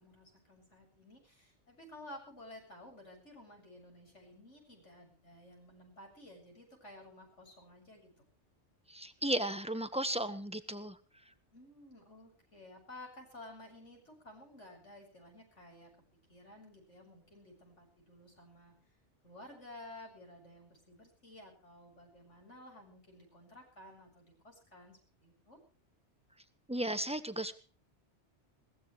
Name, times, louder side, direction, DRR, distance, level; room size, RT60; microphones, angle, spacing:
voice 1, 0.0-8.1 11.5-15.9 16.3-18.7 19.2-25.6, left 1 dB, 80° left, 2 dB, 8.0 m, -54 dB
voice 2, 8.9-10.9 26.7-27.5, right 1 dB, 5° right, 10 dB, 1.4 m, -35 dB
21.5 x 19.0 x 3.3 m, 0.38 s
omnidirectional pair, 1.2 m